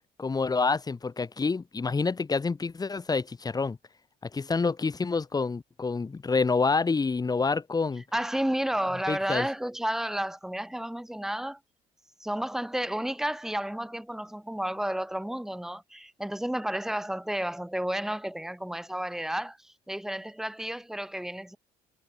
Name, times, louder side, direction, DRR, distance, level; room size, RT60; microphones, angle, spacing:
voice 1, 0.2-3.8 4.3-8.0 9.1-9.5, left 4 dB, 25° left, 3.6 m, -27 dB
voice 2, 8.1-11.6 12.2-21.6, right 1 dB, 5° right, 4.3 m, -32 dB
supercardioid pair, 90°, 16 cm